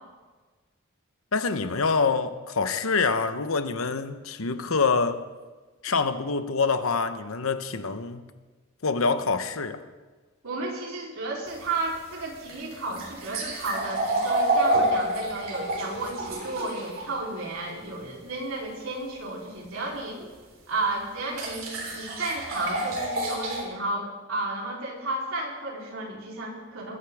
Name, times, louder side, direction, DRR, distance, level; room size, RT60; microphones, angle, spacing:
voice 1, 1.3-5.2 5.8-8.3 8.8-9.9, left 4 dB, 90° left, 1.0 m, -26 dB
voice 2, 10.4-20.2 20.7-27.0, right 2 dB, 90° right, 3.7 m, -33 dB
sound 1, 11.5-17.1 20.2-20.3 21.3-23.6, right 1 dB, 70° right, 3.6 m, -28 dB
21.0 x 13.0 x 3.6 m
head